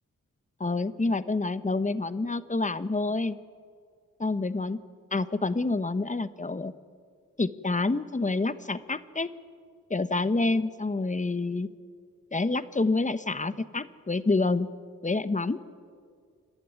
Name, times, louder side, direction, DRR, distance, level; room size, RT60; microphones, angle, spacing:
voice 1, 0.6-3.4 4.2-4.8 5.1-6.7 7.4-9.3 9.9-11.7 12.3-14.7 15.0-15.6, left 3 dB, 25° left, 13 dB, 1.1 m, -27 dB
27.5 x 11.5 x 9.6 m, 2.1 s
cardioid pair, 50°, 33 cm